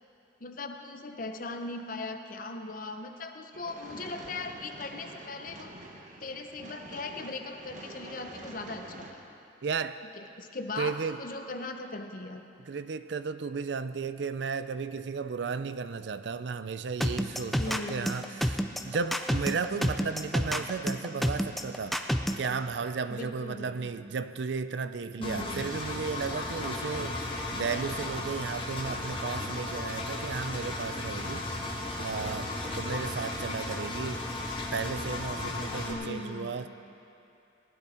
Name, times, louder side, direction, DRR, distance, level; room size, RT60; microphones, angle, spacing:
voice 1, 0.4-5.7 6.2-9.2 10.2-12.4 17.6-18.1 23.1-23.9 25.2-25.7 35.9-36.6, left 3 dB, 45° left, 6 dB, 0.8 m, -39 dB
sound 1, 3.5-9.1, right 2 dB, 40° right, 1.0 m, -47 dB
voice 2, 9.6-10.0 10.8-11.2 12.7-22.0 22.4-34.2 34.7-36.7, right 5 dB, 65° right, 12 dB, 0.4 m, -34 dB
sound 2, 17.0-22.5, equal, ahead, 0.4 m, -28 dB
Engine, 25.2-35.9, left 2 dB, 30° left, 1.4 m, -35 dB
19.0 x 12.0 x 4.3 m, 2.7 s
head